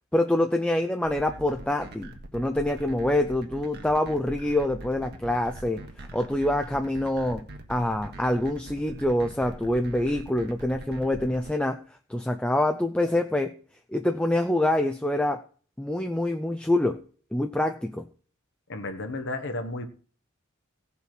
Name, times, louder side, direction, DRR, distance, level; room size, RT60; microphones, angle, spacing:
voice 1, 0.1-5.8 6.1-11.8 12.1-13.5 13.9-15.4 15.8-17.0 17.3-18.1, left 1 dB, 5° left, 5 dB, 0.5 m, -26 dB
sound 1, 1.1-11.5, right 1 dB, 50° right, 1.6 m, -42 dB
voice 2, 18.7-19.8, left 2 dB, 60° left, 6 dB, 1.3 m, -32 dB
16.0 x 5.7 x 6.0 m, 0.43 s
head